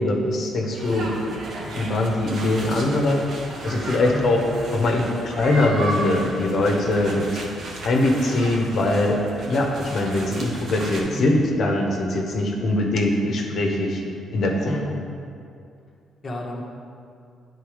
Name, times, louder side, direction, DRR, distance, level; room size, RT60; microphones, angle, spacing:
voice 1, 0.0-3.2 3.6-4.4 4.7-7.4 7.8-9.2 9.4-14.0 14.3-14.7, left 2 dB, 60° left, 1 dB, 1.0 m, -22 dB
sound 1, 0.7-11.0, right 2 dB, 60° right, 1.3 m, -34 dB
voice 2, 4.1-4.4 11.0-11.4 14.6-15.0 16.2-16.6, left 1 dB, 35° left, -2 dB, 1.2 m, -31 dB
9.0 x 4.0 x 5.0 m, 2.4 s
cardioid pair, 90°, 0 cm